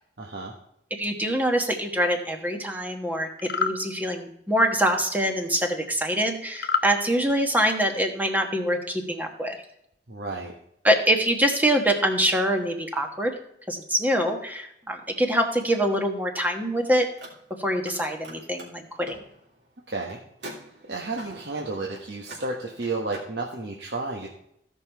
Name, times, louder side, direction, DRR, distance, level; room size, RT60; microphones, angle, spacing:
voice 1, 0.2-0.5 10.1-10.5 19.9-20.2 20.9-24.3, right 3 dB, 65° right, -1 dB, 1.2 m, -32 dB
voice 2, 0.9-9.6 10.8-13.4 13.7-17.1 17.6-19.1, equal, 10° right, 4 dB, 1.2 m, -24 dB
sound 1, 3.4-3.8 6.6-6.9, left 6 dB, 60° left, 0.7 m, -26 dB
Car, 17.1-18.0 18.2-23.3, right 1 dB, 80° right, 3.1 m, -45 dB
15.0 x 5.5 x 4.5 m, 0.75 s
head